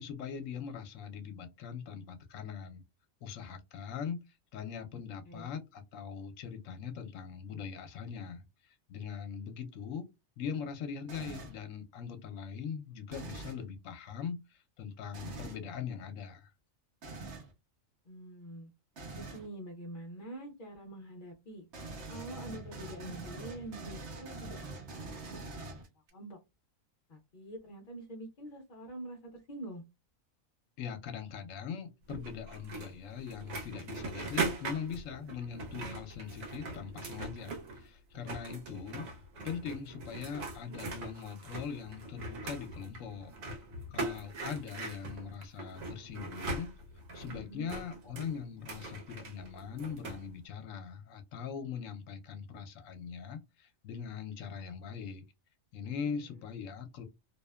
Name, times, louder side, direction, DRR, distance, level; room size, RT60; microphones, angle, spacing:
voice 1, 0.0-2.8 3.2-10.1 10.4-16.5 30.8-39.1 39.4-43.3 43.9-46.7 47.1-55.2 55.7-57.0, left 7 dB, 75° left, 0.9 m, -41 dB
sound 1, 11.1-11.6 13.1-13.6 15.1-15.6 17.0-17.5 19.0-19.5 21.7-26.1, right 3 dB, 60° right, 0.9 m, -44 dB
voice 2, 18.0-18.7 19.1-21.7 22.1-26.4 27.1-29.8 47.3-47.7 56.0-56.1, right 1 dB, 50° left, 0.6 m, -46 dB
sound 2, 32.1-37.9 38.1-50.2, right 3 dB, 80° right, 1.2 m, -41 dB
2.7 x 2.0 x 2.2 m
omnidirectional pair, 1.4 m